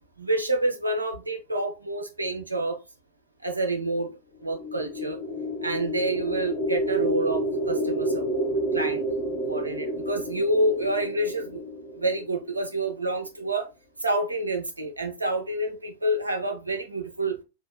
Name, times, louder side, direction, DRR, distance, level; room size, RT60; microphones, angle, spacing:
voice 1, 0.2-2.8 3.4-4.1 4.4-5.2 5.6-9.0 9.5-11.6 11.9-13.7 14.0-17.4, right 1 dB, 80° right, 0.6 m, -28 dB
sound 1, 4.4-12.6, right 1 dB, 35° left, 1.0 m, -29 dB
3.0 x 2.3 x 2.2 m
figure-of-eight pair, 90°, 0 cm